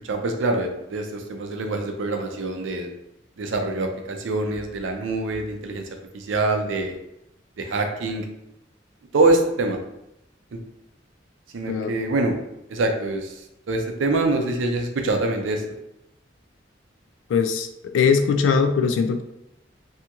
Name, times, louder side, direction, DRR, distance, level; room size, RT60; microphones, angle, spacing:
voice 1, 0.1-2.9 3.4-5.8 6.1-7.0 7.6-8.2 9.1-9.8 10.5-10.6 11.5-12.4 12.7-13.3 13.7-15.6, right 2 dB, 85° right, 4 dB, 0.5 m, -24 dB
voice 2, 17.3-17.7 17.9-19.2, left 5 dB, 85° left, 8 dB, 0.3 m, -20 dB
2.8 x 2.7 x 2.3 m, 0.85 s
head